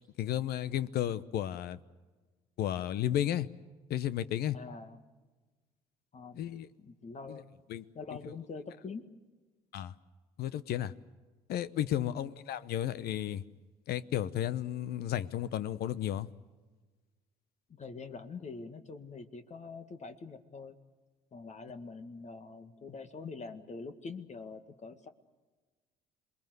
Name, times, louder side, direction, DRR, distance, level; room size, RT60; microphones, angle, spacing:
voice 1, 0.2-1.8 2.6-3.5 3.9-4.6 6.3-6.7 7.3-7.4 7.7-7.8 9.7-9.9 10.4-10.9 11.5-13.4 13.9-16.3, left 11 dB, 60° left, 16 dB, 1.0 m, -33 dB
voice 2, 4.5-5.0 6.1-6.4 6.8-7.5 8.0-9.1 12.0-12.3 17.7-20.8 21.3-25.1, left 4 dB, 40° left, 8 dB, 1.9 m, -44 dB
27.0 x 21.0 x 7.9 m, 1.3 s
hypercardioid pair, 60°, 18 cm